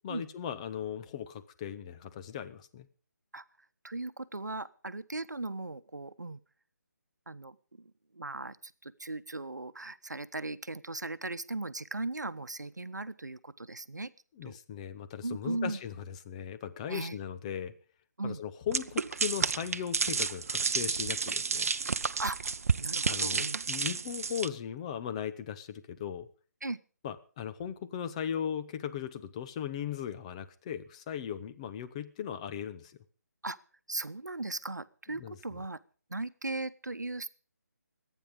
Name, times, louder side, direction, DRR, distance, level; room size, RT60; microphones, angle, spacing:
voice 1, 0.0-2.9 14.4-17.7 18.2-21.7 23.1-26.3 27.0-33.0 35.2-35.4, left 8 dB, 20° left, 10 dB, 0.9 m, -38 dB
voice 2, 3.8-6.4 7.3-14.1 14.4-14.6 15.2-15.8 16.9-17.2 18.2-18.4 22.2-22.4 22.8-23.6 26.6-26.8 33.4-33.6 33.9-35.8 36.1-37.3, right 2 dB, 85° right, 14 dB, 0.9 m, -38 dB
sound 1, 18.7-24.5, right 5 dB, 55° right, 0.7 m, -31 dB
23.5 x 9.3 x 5.2 m, 0.39 s
figure-of-eight pair, 155°, 9 cm